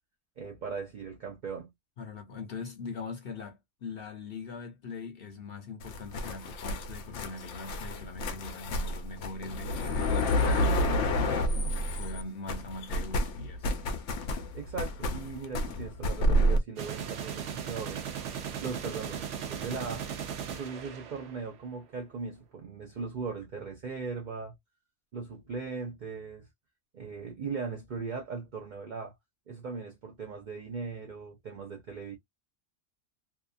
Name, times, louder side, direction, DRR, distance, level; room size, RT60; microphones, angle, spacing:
voice 1, 0.4-1.7 14.5-18.0 18.6-20.1 20.5-24.5 25.1-26.5 26.9-29.1 29.5-32.2, right 5 dB, 50° right, 0.7 m, -38 dB
voice 2, 2.0-11.5 12.0-13.7, left 4 dB, 60° left, 0.9 m, -42 dB
sound 1, 5.8-12.2 12.5-16.6, left 1 dB, 85° left, 1.0 m, -29 dB
sound 2, 16.8-21.6, right 8 dB, 85° right, 1.0 m, -37 dB
2.8 x 2.3 x 2.4 m
omnidirectional pair, 1.2 m